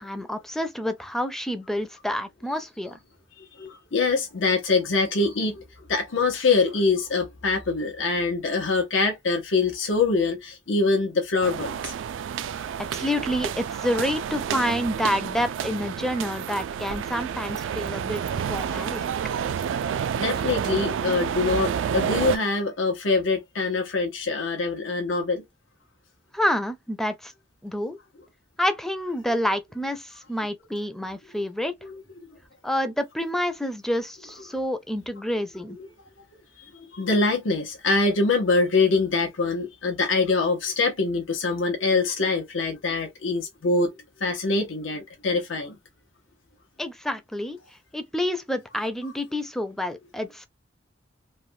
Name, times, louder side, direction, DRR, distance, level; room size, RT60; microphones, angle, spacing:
voice 1, 0.0-3.0 12.9-18.2 18.5-19.0 26.3-27.3 27.6-28.0 28.6-31.7 32.6-35.8 46.8-47.6 47.9-50.5, left 1 dB, ahead, 0.4 m, -28 dB
voice 2, 3.4-5.6 5.9-11.9 20.1-25.4 31.8-32.0 35.8-35.9 36.6-43.9 44.2-45.8, left 3 dB, 90° left, 0.8 m, -24 dB
sound 1, 11.4-22.4, right 8 dB, 80° right, 0.3 m, -29 dB
3.2 x 2.1 x 2.6 m
head